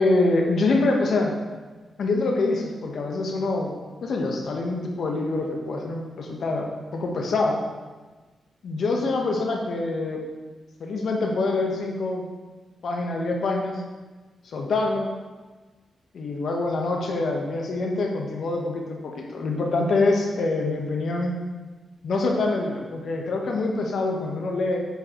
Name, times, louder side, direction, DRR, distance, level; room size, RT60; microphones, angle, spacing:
voice 1, 0.0-1.3 2.0-3.7 4.0-6.7 6.9-7.6 8.6-10.2 10.8-12.3 12.8-13.8 14.4-15.1 16.1-21.3 22.0-24.8, left 3 dB, 70° left, 1 dB, 1.1 m, -25 dB
8.3 x 4.7 x 3.0 m, 1.3 s
cardioid pair, 75°, 0 cm